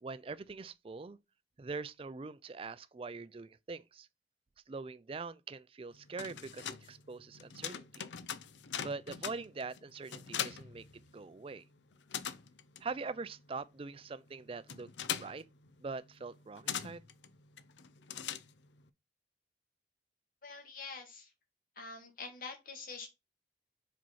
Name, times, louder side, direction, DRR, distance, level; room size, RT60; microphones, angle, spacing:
voice 1, 0.0-1.2 1.6-4.1 4.7-8.0 8.8-10.8 11.1-11.6 12.8-14.9 15.2-15.4 15.8-17.0, right 4 dB, 30° right, 0.4 m, -43 dB
sound 1, 5.9-11.5 11.8-18.9, left 9 dB, 85° left, 0.5 m, -42 dB
voice 2, 20.4-21.3 21.8-23.1, left 4 dB, 50° left, 1.9 m, -45 dB
5.1 x 4.5 x 5.5 m
head